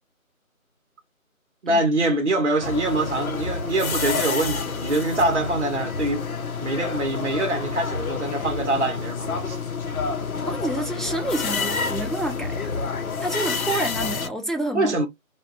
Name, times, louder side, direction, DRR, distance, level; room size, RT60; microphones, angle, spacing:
voice 1, 1.6-6.3 6.6-9.6 14.7-15.1, right 2 dB, 55° right, 0.7 m, -24 dB
sound 1, 2.6-14.3, left 5 dB, 75° left, 0.7 m, -28 dB
voice 2, 10.4-12.7 13.2-15.0, right 1 dB, ahead, 0.3 m, -28 dB
2.2 x 2.2 x 2.5 m
figure-of-eight pair, 170°, 43 cm